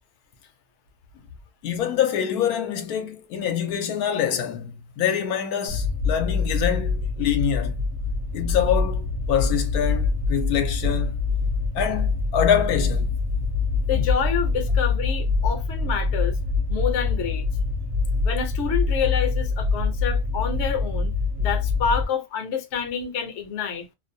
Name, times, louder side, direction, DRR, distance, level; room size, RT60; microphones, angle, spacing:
voice 1, 1.6-7.8 8.3-11.2 11.7-13.2, left 9 dB, 80° left, 1.0 m, -25 dB
sound 1, 5.7-22.0, left 4 dB, 55° right, 0.7 m, -25 dB
voice 2, 13.9-16.4 16.7-17.5 18.2-23.9, left 7 dB, 60° left, 0.9 m, -28 dB
2.6 x 2.1 x 2.6 m
omnidirectional pair, 1.6 m